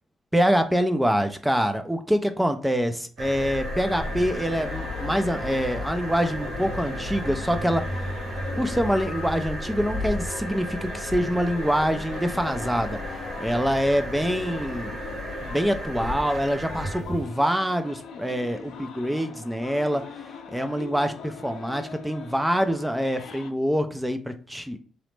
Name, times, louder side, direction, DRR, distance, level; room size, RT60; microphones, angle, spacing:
voice 1, 0.3-8.1 8.6-15.0 15.4-20.1 20.5-24.8, equal, 5° right, 8 dB, 0.3 m, -25 dB
sound 1, 3.2-17.2, equal, 75° right, 1.1 m, -33 dB
sound 2, 3.9-23.5, left 6 dB, 75° left, 0.5 m, -42 dB
2.9 x 2.0 x 3.1 m, 0.41 s
cardioid pair, 90°, 0 cm